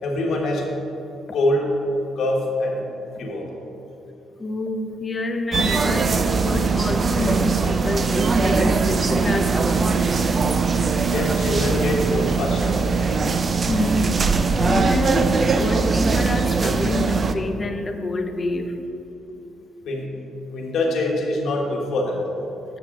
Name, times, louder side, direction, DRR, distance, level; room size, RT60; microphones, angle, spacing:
voice 1, 0.0-0.7 1.3-1.7 2.1-2.9 3.2-3.5 11.1-12.8 19.9-20.1 20.5-22.2, left 1 dB, 70° left, 0 dB, 1.2 m, -24 dB
voice 2, 4.4-6.1 6.4-10.0 13.7-18.7, left 2 dB, 30° left, 7 dB, 0.6 m, -27 dB
sound 1, 5.5-17.3, right 4 dB, 40° right, 0.4 m, -21 dB
7.2 x 6.8 x 3.7 m, 2.9 s
cardioid pair, 90°, 0 cm